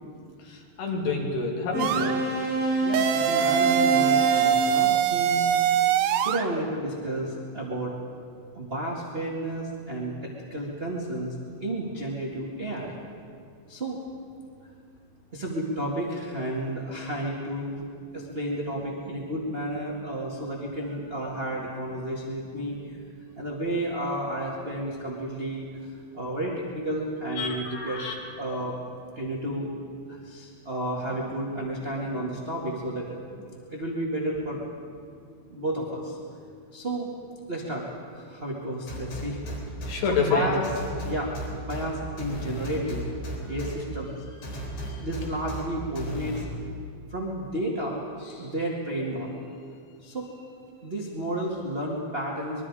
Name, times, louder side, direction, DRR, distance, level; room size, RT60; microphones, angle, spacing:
voice 1, 0.5-2.2 27.4-28.1 39.9-40.5, left 4 dB, 75° left, 0 dB, 4.3 m, -28 dB
sound 1, 1.7-4.6, right 2 dB, 60° right, 7.8 m, -27 dB
sound 2, 1.8-2.1 2.9-6.5, right 9 dB, 80° right, 2.8 m, -23 dB
voice 2, 2.8-5.5 6.2-7.9 8.5-11.3 11.6-12.9 13.7-14.0 15.3-17.8 18.1-23.0 23.4-25.6 26.1-28.8 29.1-29.7 30.1-33.2 33.7-34.6 35.4-36.2 36.7-37.1 37.5-37.9 38.1-39.4 40.1-40.6 41.0-43.1 43.4-46.5 47.1-49.4 50.0-50.4 50.8-52.7, right 1 dB, 25° right, -3 dB, 1.2 m, -32 dB
sound 3, 38.9-39.9 40.6-41.8 42.2-43.7 44.4-45.6 46.0-46.4, equal, 90° left, 6.2 m, -34 dB
25.0 x 22.0 x 4.9 m, 2.3 s
omnidirectional pair, 4.9 m